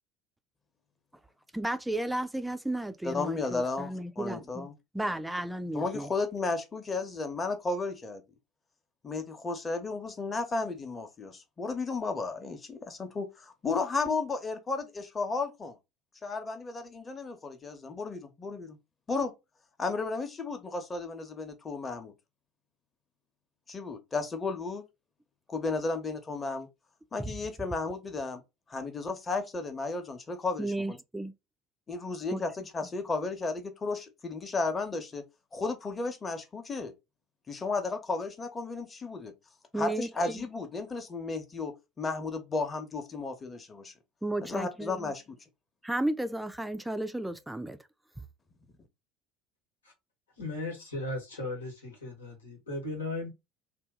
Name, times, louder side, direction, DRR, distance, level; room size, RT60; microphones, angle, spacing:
voice 1, 1.5-4.7 4.9-6.1 27.2-27.3 30.6-31.3 32.3-32.4 39.7-40.5 44.2-45.1 45.8-47.8, right 1 dB, 5° right, 0.4 m, -33 dB
voice 2, 3.0-4.7 5.7-8.2 9.0-15.8 16.2-18.8 19.1-19.3 19.8-22.1 23.7-24.8 25.5-26.7 27.1-28.4 28.7-31.0 31.9-35.2 35.5-36.9 37.5-39.3 39.7-43.9 44.4-45.4, left 3 dB, 25° left, 0.9 m, -34 dB
voice 3, 50.4-53.3, left 2 dB, 85° left, 1.3 m, -36 dB
2.8 x 2.3 x 3.6 m
hypercardioid pair, 70°, 0 cm